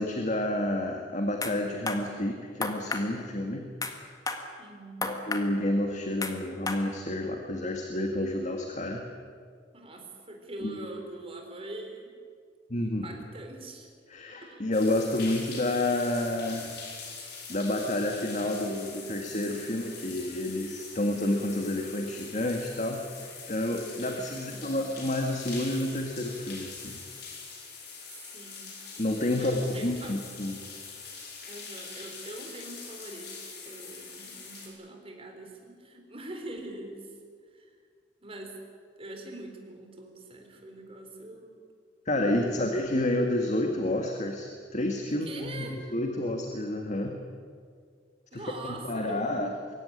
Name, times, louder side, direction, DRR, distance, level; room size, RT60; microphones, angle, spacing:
voice 1, 0.0-3.6 5.0-9.0 10.6-10.9 12.7-13.2 14.1-16.8 17.5-27.0 29.0-30.6 42.1-47.2 48.3-49.7, left 1 dB, 40° left, 3 dB, 1.9 m, -30 dB
sound 1, 1.4-1.5 1.9-2.0 2.6-3.1 3.8-3.9 4.3-4.4 5.0-5.4 6.2-6.3 6.7-6.8, left 3 dB, 20° left, 1.8 m, -32 dB
voice 2, 4.6-5.1 9.7-12.1 12.8-13.9 14.4-14.7 24.3-24.8 28.1-28.7 29.4-30.2 31.5-37.1 37.5-37.7 38.2-38.6 39.0-41.6 42.5-42.6 45.2-45.8 48.3-49.4, right 2 dB, 30° right, 2 dB, 4.1 m, -43 dB
sound 2, 14.7-34.7, left 5 dB, 65° left, 5.0 m, -43 dB
22.5 x 16.5 x 9.9 m, 2.1 s
head